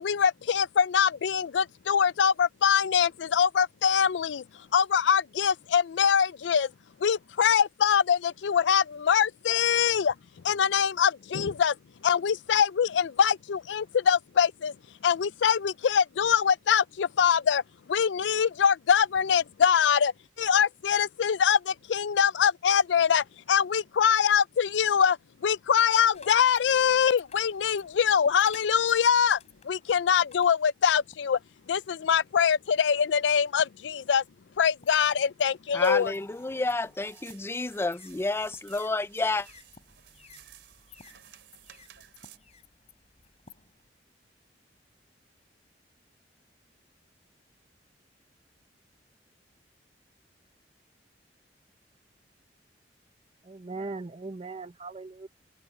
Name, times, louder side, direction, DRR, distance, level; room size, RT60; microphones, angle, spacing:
voice 1, 0.0-4.4 4.7-6.7 7.0-10.1 10.4-11.8 12.0-14.7 15.0-17.6 17.9-20.1 20.4-25.2 25.4-29.4 29.6-31.4 31.7-34.2 34.6-36.1, left 7 dB, 85° left, 0.4 m, -23 dB
sound 1, 26.1-31.4 32.1-32.7 33.3-33.9 34.2-43.9, left 5 dB, 40° left, 3.8 m, -56 dB
voice 2, 35.7-39.5, left 2 dB, 15° left, 0.3 m, -30 dB
sound 2, 35.8-42.4, right 10 dB, 90° right, 3.1 m, -55 dB
voice 3, 53.4-55.3, right 3 dB, 35° right, 0.7 m, -39 dB
head